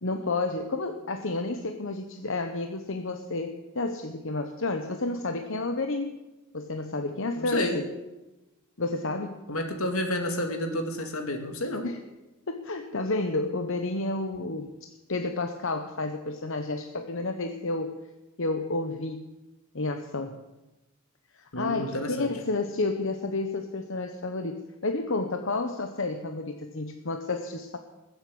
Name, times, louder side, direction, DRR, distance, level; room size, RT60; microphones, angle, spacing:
voice 1, 0.0-6.1 6.5-7.9 8.8-9.4 11.8-12.0 12.5-14.7 15.1-18.0 18.4-19.3 19.7-20.4 21.3-27.8, left 2 dB, 65° left, 5 dB, 1.1 m, -30 dB
voice 2, 7.4-7.8 9.5-11.9 21.5-22.3, left 1 dB, 85° left, 4 dB, 2.6 m, -30 dB
20.0 x 8.0 x 8.7 m, 1.1 s
head